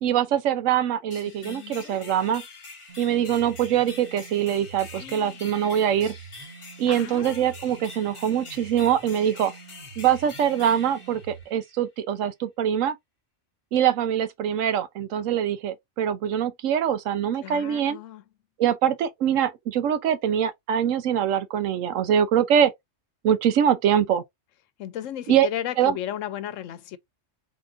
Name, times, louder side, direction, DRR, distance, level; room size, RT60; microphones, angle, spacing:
voice 1, 0.0-2.4 3.0-6.2 6.8-9.5 10.0-13.0 13.7-18.0 18.6-22.7 23.2-24.2 25.3-25.5 25.8-26.0, right 9 dB, 90° right, 1.0 m, -23 dB
sound 1, 1.1-11.8, left 3 dB, 30° left, 0.8 m, -45 dB
voice 2, 1.3-2.3 5.0-5.5 6.9-7.4 17.4-18.2 24.8-27.0, left 11 dB, 85° left, 1.0 m, -35 dB
sound 2, 2.9-11.4, right 5 dB, 50° right, 2.0 m, -46 dB
3.9 x 3.5 x 2.4 m
omnidirectional pair, 1.3 m